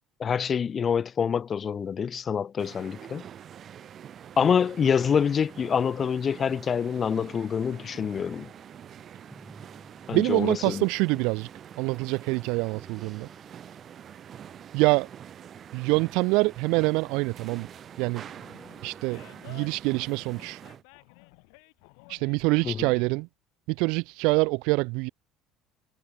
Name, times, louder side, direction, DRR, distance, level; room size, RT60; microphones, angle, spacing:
voice 1, 0.2-3.2 4.4-8.5 10.1-10.8 22.6-22.9, left 7 dB, 35° left, 0.8 m, -26 dB
sound 1, 2.6-20.8, right 9 dB, 40° right, 2.6 m, -46 dB
sound 2, 6.0-19.3, right 2 dB, 10° right, 5.8 m, -57 dB
voice 2, 10.1-11.5 11.8-13.3 14.7-15.1 15.7-17.7 18.0-18.2 18.8-19.2 19.5-20.6 22.1-23.3 23.7-25.1, right 27 dB, 80° right, 0.4 m, -25 dB
Animal, 18.2-23.2, left 40 dB or more, 85° left, 3.0 m, -53 dB
cardioid pair, 120°, 0 cm